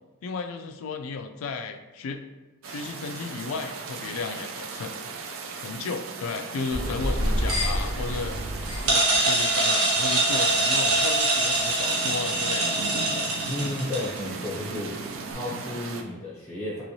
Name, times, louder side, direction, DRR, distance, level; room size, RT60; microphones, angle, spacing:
voice 1, 0.2-2.2 2.7-4.9 5.6-8.4 8.8-13.3, left 4 dB, 70° left, 5 dB, 0.3 m, -34 dB
sound 1, 2.6-16.0, right 4 dB, 65° right, 0.4 m, -37 dB
sound 2, 6.7-14.2, right 2 dB, 85° right, 1.0 m, -24 dB
voice 2, 13.5-15.0 15.3-16.8, left 1 dB, 15° left, -5 dB, 0.5 m, -32 dB
3.0 x 3.0 x 2.7 m, 1.1 s
head